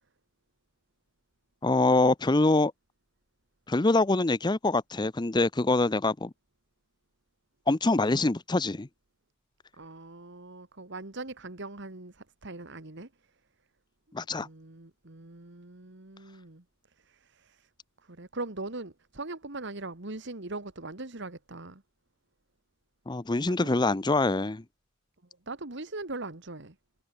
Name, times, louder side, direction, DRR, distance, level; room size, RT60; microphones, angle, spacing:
voice 1, 1.6-2.7 3.7-6.3 7.7-8.9 14.1-14.5 23.1-24.6, left 2 dB, 20° left, 0.6 m, -24 dB
voice 2, 9.8-13.1 14.4-16.6 17.0-17.7 18.0-21.8 23.5-23.6 25.5-26.8, right 2 dB, 55° right, 1.8 m, -41 dB
head